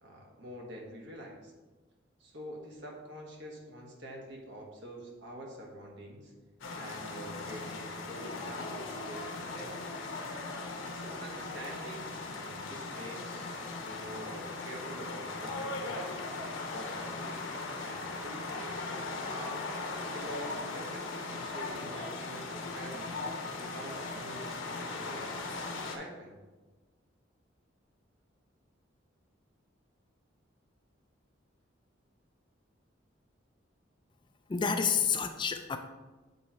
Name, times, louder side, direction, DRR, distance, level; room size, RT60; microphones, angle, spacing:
voice 1, 0.0-1.5 2.2-6.3 6.7-9.8 10.9-13.5 13.8-16.2 16.7-17.4 17.8-19.6 20.1-23.1 23.6-25.6 25.9-26.3, right 1 dB, 65° right, 0 dB, 1.3 m, -46 dB
sound 1, 6.6-26.0, left 3 dB, 85° left, 0.9 m, -39 dB
voice 2, 34.5-35.8, left 6 dB, 25° left, 7 dB, 0.3 m, -29 dB
8.1 x 3.2 x 4.3 m, 1.3 s
head